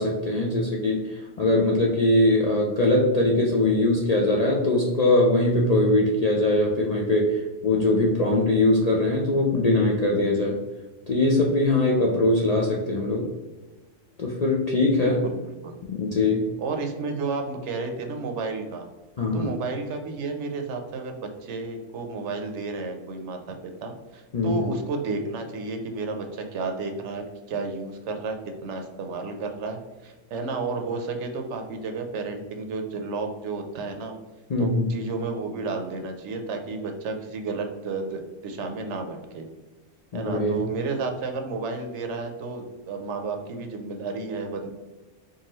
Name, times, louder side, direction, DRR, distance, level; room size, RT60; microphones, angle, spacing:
voice 1, 0.0-10.6 11.1-13.3 14.2-15.2 15.9-16.5 19.2-19.5 24.3-24.7 34.5-34.9 40.1-40.6, left 2 dB, 55° left, -2 dB, 0.4 m, -22 dB
voice 2, 14.9-15.8 16.6-18.9 19.3-34.1 34.6-39.5 40.1-44.7, right 3 dB, 75° right, 4 dB, 0.9 m, -32 dB
4.6 x 2.6 x 2.9 m, 1.2 s
omnidirectional pair, 1.2 m